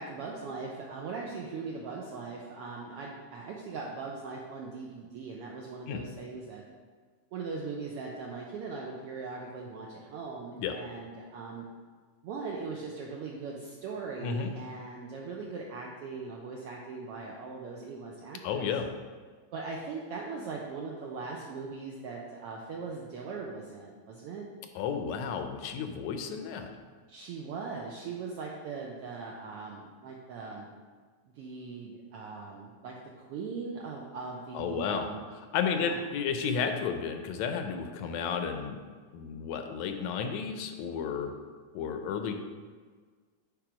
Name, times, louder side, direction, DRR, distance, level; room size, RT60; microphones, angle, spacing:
voice 1, 0.0-6.6 7.3-11.6 12.2-18.7 19.5-24.5 27.1-30.7 31.4-35.2 35.7-36.0, right 4 dB, 80° right, -1 dB, 1.3 m, -40 dB
voice 2, 18.4-18.9 24.8-26.7 34.5-35.1 35.4-38.8 39.1-41.3 41.7-42.3, left 6 dB, 80° left, 6 dB, 1.8 m, -32 dB
8.9 x 3.4 x 4.9 m, 1.5 s
omnidirectional pair, 3.3 m